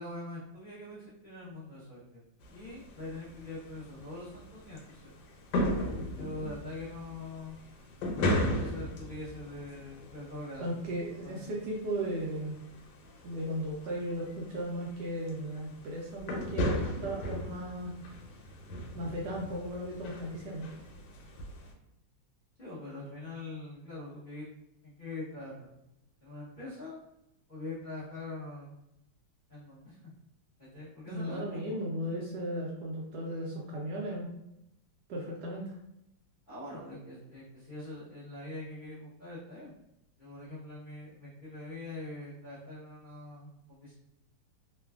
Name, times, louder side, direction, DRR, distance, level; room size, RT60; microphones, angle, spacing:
voice 1, 0.0-2.2 2.5-5.2 5.6-7.6 8.1-10.7 11.1-11.4 22.6-24.5 24.8-25.7 26.2-27.0 27.5-28.7 29.5-30.0 30.6-31.8 36.5-39.7 40.2-43.9, left 2 dB, 40° left, -11 dB, 0.7 m, -43 dB
sound 1, 2.4-21.7, equal, 85° left, 1.3 m, -37 dB
voice 2, 10.6-12.6 13.2-17.9 18.9-20.7 31.1-34.3 35.1-35.7, right 1 dB, 75° right, -2 dB, 1.0 m, -36 dB
3.2 x 2.2 x 2.3 m, 0.84 s
omnidirectional pair, 2.1 m